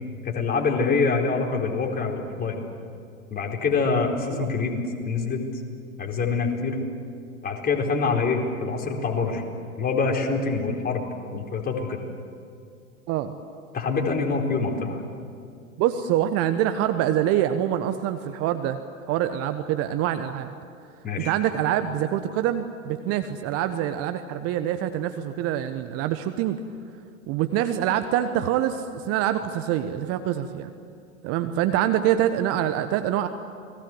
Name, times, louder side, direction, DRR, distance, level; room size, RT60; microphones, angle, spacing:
voice 1, 0.2-2.6 3.3-5.4 6.0-6.8 7.4-9.4 9.8-12.0 13.7-15.0 21.0-21.3, left 4 dB, 20° left, 1 dB, 4.3 m, -25 dB
voice 2, 15.8-18.8 19.1-20.5 21.2-26.6 27.3-30.7 31.2-33.3, right 11 dB, 35° right, 9 dB, 1.2 m, -25 dB
29.5 x 20.5 x 8.0 m, 2.4 s
figure-of-eight pair, 100°, 42 cm